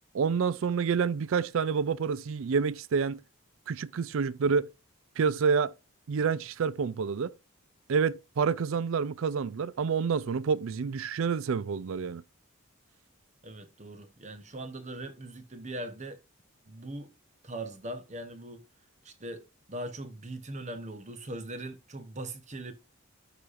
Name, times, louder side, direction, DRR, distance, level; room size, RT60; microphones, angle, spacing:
voice 1, 0.1-3.2 3.7-4.7 5.2-5.7 6.1-7.3 7.9-12.2, right 6 dB, 65° right, 0.4 m, -28 dB
voice 2, 13.4-16.2 16.7-17.1 17.4-18.6 19.0-22.7, right 1 dB, 30° right, 0.9 m, -40 dB
13.0 x 4.9 x 2.5 m
head